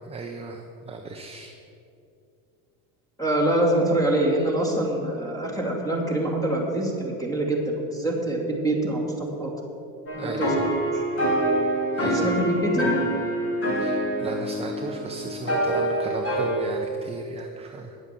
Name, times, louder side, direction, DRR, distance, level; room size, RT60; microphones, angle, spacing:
voice 1, 0.0-1.5 10.1-10.7 11.9-12.3 13.8-18.0, right 4 dB, 15° right, 3 dB, 0.6 m, -36 dB
voice 2, 3.2-7.6 7.9-9.5 10.2-11.0 12.2-12.9, right 1 dB, 10° left, -1 dB, 2.4 m, -25 dB
sound 1, 10.1-16.6, right 1 dB, 30° left, 2.5 m, -25 dB
10.0 x 8.0 x 7.4 m, 2.6 s
supercardioid pair, 125°, 44 cm